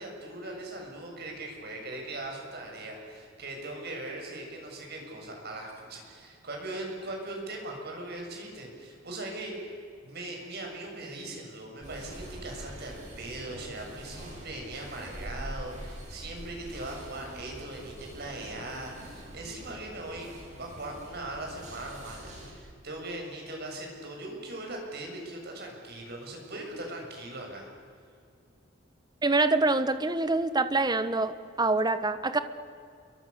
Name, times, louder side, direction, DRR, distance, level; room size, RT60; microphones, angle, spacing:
voice 1, 0.0-9.8 10.0-20.3 20.6-27.7, right 2 dB, 55° right, 1 dB, 7.2 m, -40 dB
sound 1, 11.8-22.5, right 1 dB, 40° right, 7.8 m, -44 dB
voice 2, 29.2-32.4, right 3 dB, 20° right, 11 dB, 1.2 m, -25 dB
29.0 x 23.5 x 6.9 m, 2.3 s
head